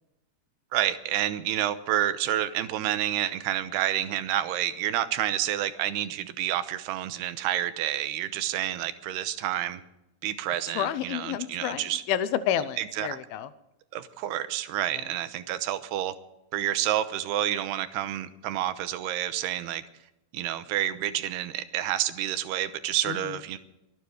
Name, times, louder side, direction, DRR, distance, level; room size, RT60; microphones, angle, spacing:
voice 1, 0.7-9.8 10.2-12.0 12.8-13.1 13.9-16.1 16.5-19.8 20.3-23.6, right 12 dB, 85° right, 11 dB, 3.0 m, -29 dB
voice 2, 10.7-13.5 14.9-15.1 23.1-23.4, left 10 dB, 75° left, 13 dB, 2.5 m, -30 dB
24.0 x 9.5 x 5.0 m, 0.90 s
omnidirectional pair, 4.6 m